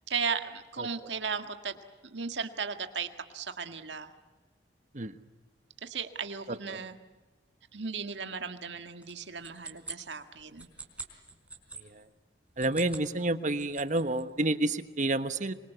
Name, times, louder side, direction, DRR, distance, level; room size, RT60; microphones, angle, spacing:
voice 1, 0.1-1.8 2.0-4.1 5.8-7.0 7.7-10.7, right 5 dB, 80° right, 7 dB, 1.8 m, -36 dB
sound 1, 9.0-11.8 12.5-13.1 13.4-14.2, right 3 dB, 10° right, 4.2 m, -44 dB
voice 2, 12.6-15.5, right 2 dB, 45° right, 11 dB, 1.3 m, -29 dB
25.5 x 25.0 x 8.2 m, 1.3 s
head